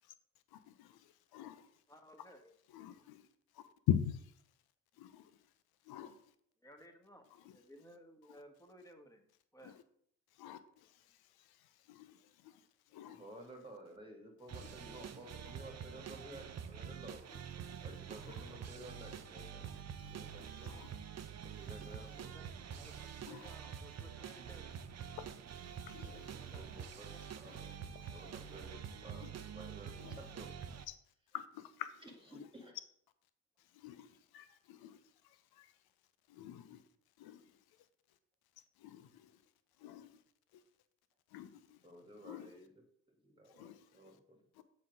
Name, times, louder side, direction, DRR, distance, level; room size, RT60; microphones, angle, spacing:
voice 1, 0.5-1.8 2.7-3.3 3.5-4.4 4.9-5.5 5.8-6.3 7.3-7.6 8.3-8.4 9.6-9.8 10.3-13.2 14.6-14.7 17.3-17.4 18.2-18.4 20.0-20.1 20.6-20.9 21.6-21.7 22.9-23.6 25.2-26.5 27.5-28.2 29.2-29.3 30.0-30.2 30.9-31.0 31.3-32.0 32.3-32.5 33.6-35.8 36.3-36.9 37.2-37.9 38.8-39.4 39.8-40.2 40.5-40.6 41.3-41.8 42.2-42.5 43.5-44.2 44.5-44.6, left 10 dB, 65° left, 0.8 m, -45 dB
voice 2, 1.9-2.5 6.6-9.8 21.7-24.8 26.1-27.2, equal, 10° left, 1.6 m, -59 dB
voice 3, 13.1-17.2 17.8-19.7 20.0-20.7 21.4-22.4 26.0-27.7 28.0-30.8 32.0-32.7 41.8-42.7 43.1-44.6, equal, 10° right, 1.9 m, -54 dB
sound 1, 14.5-30.8, right 8 dB, 40° right, 0.7 m, -47 dB
7.5 x 4.2 x 5.3 m
hypercardioid pair, 45°, 40 cm